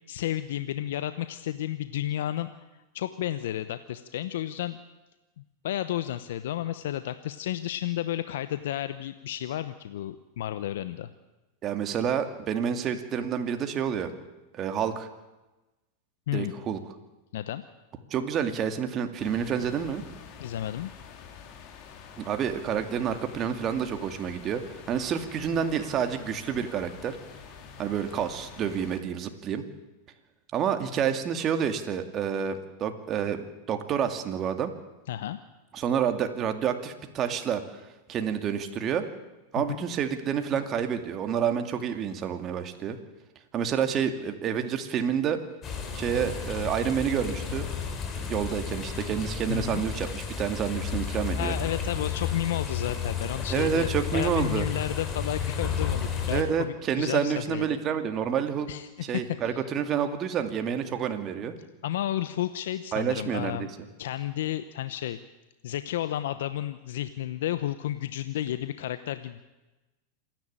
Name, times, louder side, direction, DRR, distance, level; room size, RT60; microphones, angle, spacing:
voice 1, 0.1-2.5 2.9-4.8 5.6-11.1 16.3-16.5 17.3-17.6 20.4-20.9 35.1-35.4 39.6-39.7 49.5-49.8 51.1-57.8 58.7-59.6 61.8-63.7 64.0-65.2 65.6-69.4, left 12 dB, 70° left, 12 dB, 0.9 m, -32 dB
voice 2, 11.6-14.1 14.5-15.1 16.3-16.8 18.1-20.0 22.2-27.2 27.8-29.6 30.5-34.7 35.7-37.6 38.1-39.0 39.5-43.0 43.5-45.4 45.9-47.7 48.2-51.5 53.5-54.7 56.3-58.7 59.0-61.5 62.9-63.7, right 8 dB, 35° right, 7 dB, 2.4 m, -29 dB
sound 1, 19.2-29.0, left 6 dB, 50° left, 3.2 m, -47 dB
sound 2, 45.6-56.4, left 6 dB, 30° left, 4.1 m, -32 dB
27.0 x 11.0 x 9.0 m, 1.1 s
hypercardioid pair, 105°, 0 cm